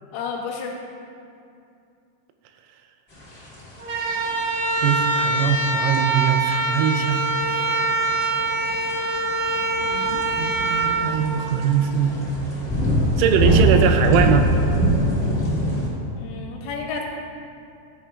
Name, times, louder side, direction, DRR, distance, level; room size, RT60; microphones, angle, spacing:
voice 1, 0.1-0.8 16.2-17.0, left 5 dB, 75° left, 0 dB, 2.8 m, -31 dB
sound 1, 3.2-15.9, right 1 dB, 45° left, 0.7 m, -23 dB
sound 2, 3.8-11.9, right 3 dB, 55° right, 2.3 m, -24 dB
voice 2, 4.8-7.6 9.9-12.2 13.2-14.5, right 8 dB, 85° right, 6 dB, 3.1 m, -22 dB
15.0 x 10.0 x 2.4 m, 2.5 s
omnidirectional pair, 5.6 m